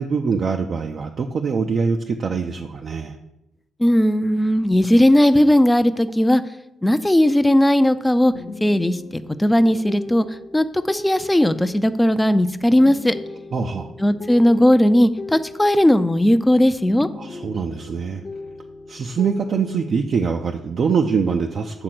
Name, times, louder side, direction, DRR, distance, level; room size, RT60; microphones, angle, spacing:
voice 1, 0.0-3.2 13.5-13.9 17.1-18.2 18.9-21.8, right 5 dB, 50° right, 4 dB, 0.4 m, -23 dB
voice 2, 3.8-6.4 6.8-8.3 8.6-10.3 10.5-13.1 14.0-17.1, left 1 dB, 10° left, 11 dB, 0.4 m, -17 dB
sound 1, 8.3-16.6 16.9-20.0, left 3 dB, 45° left, 0.8 m, -38 dB
7.7 x 3.7 x 6.0 m, 0.90 s
cardioid pair, 90°, 0 cm